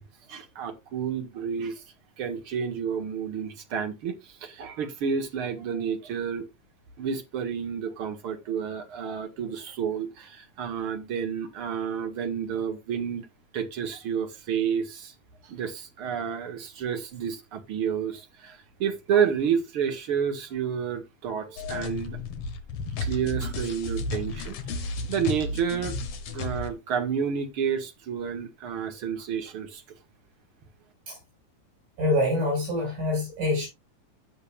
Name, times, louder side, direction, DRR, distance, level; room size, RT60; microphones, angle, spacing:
voice 1, 0.3-1.8 2.2-6.5 7.0-13.3 13.5-15.1 15.4-22.2 23.0-26.0 26.3-29.8, right 7 dB, 50° right, 2.2 m, -30 dB
sound 1, 21.6-26.7, left 3 dB, 60° left, 1.9 m, -33 dB
voice 2, 32.0-33.7, left 1 dB, 85° right, 7.8 m, -25 dB
15.5 x 6.6 x 2.4 m
omnidirectional pair, 3.6 m